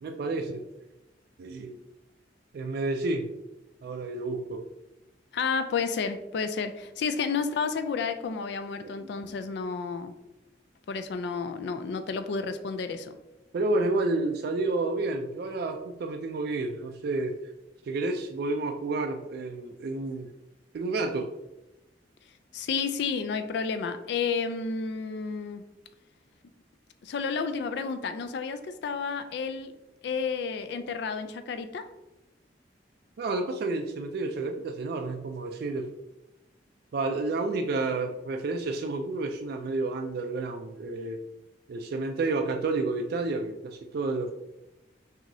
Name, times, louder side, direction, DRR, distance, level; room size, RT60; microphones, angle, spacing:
voice 1, 0.0-0.6 1.4-1.8 2.5-3.3 3.8-4.6 8.8-9.4 13.5-17.5 17.8-20.3 20.7-21.3 33.2-35.9 36.9-41.2 41.7-44.3, right 3 dB, 60° right, 4 dB, 0.3 m, -30 dB
voice 2, 5.3-10.2 10.9-13.2 22.5-25.7 27.0-29.7 30.0-31.8, left 5 dB, 65° left, 10 dB, 0.3 m, -31 dB
5.9 x 2.7 x 2.6 m, 0.97 s
head